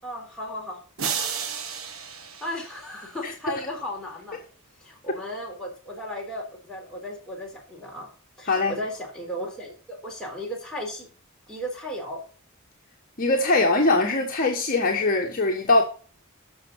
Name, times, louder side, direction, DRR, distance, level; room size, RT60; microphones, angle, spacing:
voice 1, 0.0-0.8 2.4-4.4 4.8-8.1 8.4-11.1 11.5-12.2, equal, 5° left, 4.1 m, -35 dB
sound 1, 1.0-3.3, right 6 dB, 75° right, 1.3 m, -33 dB
voice 2, 13.2-15.8, left 2 dB, 40° left, 1.5 m, -21 dB
7.8 x 6.6 x 8.1 m
head